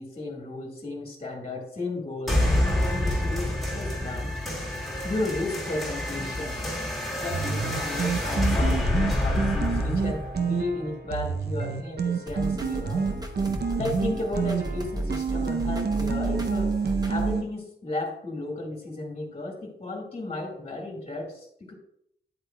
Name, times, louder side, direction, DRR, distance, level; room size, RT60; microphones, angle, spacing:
voice 1, 0.0-4.3 5.0-6.7 7.2-13.1 13.8-16.8 17.1-21.7, left 2 dB, 30° left, 0 dB, 1.7 m, -34 dB
sound 1, 2.3-11.3, left 1 dB, ahead, 2.1 m, -27 dB
sound 2, 7.3-17.4, right 5 dB, 60° right, 0.7 m, -29 dB
sound 3, 12.3-17.3, right 1 dB, 20° right, 0.9 m, -33 dB
9.7 x 8.1 x 2.3 m, 0.72 s
wide cardioid pair, 155°, 19 cm